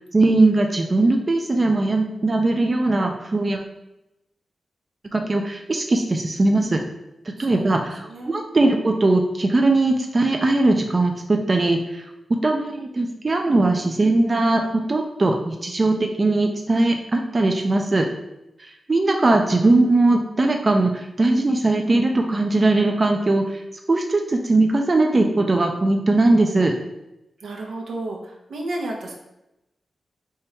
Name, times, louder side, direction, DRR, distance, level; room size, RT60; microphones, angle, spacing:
voice 1, 0.1-3.6 5.1-6.8 7.4-12.0 12.4-18.1 18.9-23.6 23.9-26.7, right 2 dB, 35° right, 3 dB, 0.4 m, -20 dB
voice 2, 7.4-8.7 27.4-29.1, right 2 dB, 85° right, 0 dB, 0.8 m, -33 dB
3.5 x 2.9 x 4.3 m, 0.90 s
wide cardioid pair, 85°, 0 cm